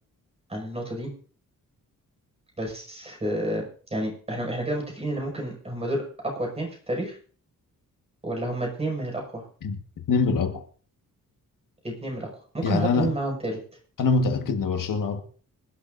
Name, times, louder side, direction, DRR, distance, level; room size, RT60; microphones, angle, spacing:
voice 1, 0.5-1.1 2.6-3.6 3.9-7.2 8.2-9.4 11.8-13.6, right 1 dB, 20° right, 5.9 m, -30 dB
voice 2, 10.1-10.6 12.6-13.1 14.0-15.2, left 4 dB, 70° left, 1.6 m, -24 dB
25.5 x 12.0 x 2.7 m
wide cardioid pair, 150°, 33 cm